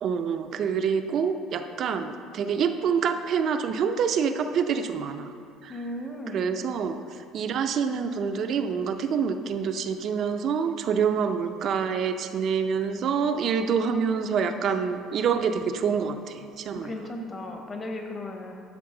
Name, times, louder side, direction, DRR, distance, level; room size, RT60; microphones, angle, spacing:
voice 1, 0.0-5.2 5.6-5.7 6.3-16.9, right 6 dB, 50° right, 7 dB, 0.5 m, -26 dB
voice 2, 5.7-6.5 16.7-18.5, left 1 dB, 25° left, 3 dB, 1.1 m, -36 dB
11.5 x 6.1 x 3.8 m, 2.3 s
cardioid pair, 130°, 0 cm